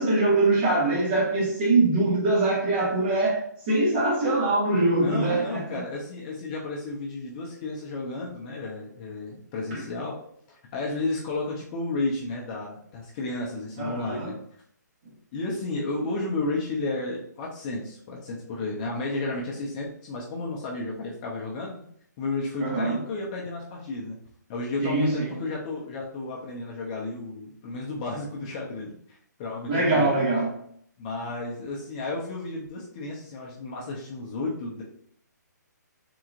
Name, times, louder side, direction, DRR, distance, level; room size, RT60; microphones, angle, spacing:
voice 1, 0.0-5.8 9.7-9.8 13.8-14.3 22.6-23.0 24.8-25.3 29.7-30.5, right 2 dB, 30° right, 1.2 m, -23 dB
voice 2, 4.9-10.2 10.5-14.4 15.3-21.8 22.2-24.2 24.5-30.1 31.0-34.8, left 2 dB, 25° left, 0.6 m, -32 dB
3.7 x 2.8 x 2.4 m
hypercardioid pair, 155°, 10 cm